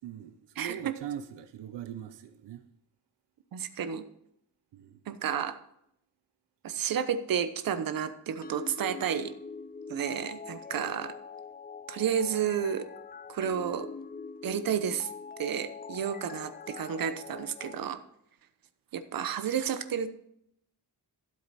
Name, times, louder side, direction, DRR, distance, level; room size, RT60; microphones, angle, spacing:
voice 1, 0.0-2.6 4.7-5.0, right 9 dB, 80° right, 0.8 m, -41 dB
voice 2, 0.6-0.9 3.5-4.0 5.1-5.6 6.6-9.4 9.9-11.1 11.9-12.9 13.3-13.9 14.4-15.1 15.4-18.0 18.9-20.1, right 8 dB, 55° right, 1.0 m, -31 dB
sound 1, 8.4-17.8, left 5 dB, 25° left, 0.4 m, -43 dB
13.0 x 7.8 x 4.2 m
wide cardioid pair, 145°, 41 cm